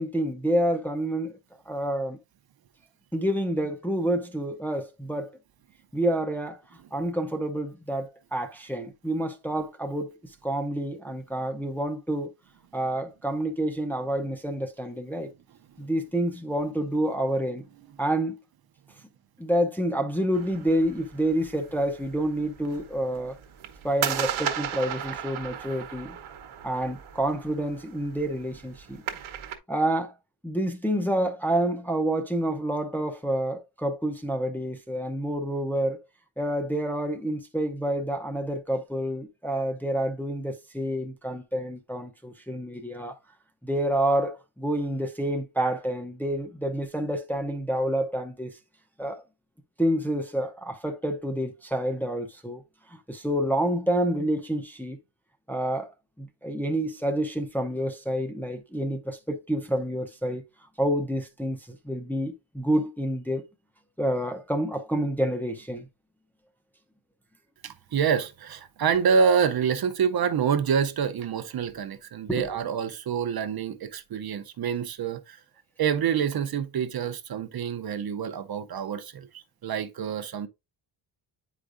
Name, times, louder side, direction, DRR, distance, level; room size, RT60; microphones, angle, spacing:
voice 1, 0.0-1.3 1.7-2.2 3.1-5.4 5.9-6.6 6.9-10.2 10.4-12.3 12.7-15.3 15.8-17.7 18.0-18.4 19.4-23.4 23.8-26.2 26.6-29.0 29.7-30.1 30.4-36.0 36.4-43.2 43.6-48.6 49.0-49.2 49.8-52.6 52.9-55.0 55.5-55.9 56.2-60.4 60.8-63.4 64.0-65.9 72.3-72.5, right 1 dB, 5° left, 0.6 m, -28 dB
sound 1, 20.3-29.6, right 9 dB, 75° right, 1.1 m, -36 dB
voice 2, 67.6-75.4 75.8-80.5, right 7 dB, 50° right, 0.6 m, -27 dB
8.8 x 4.9 x 2.5 m
wide cardioid pair, 180°, 48 cm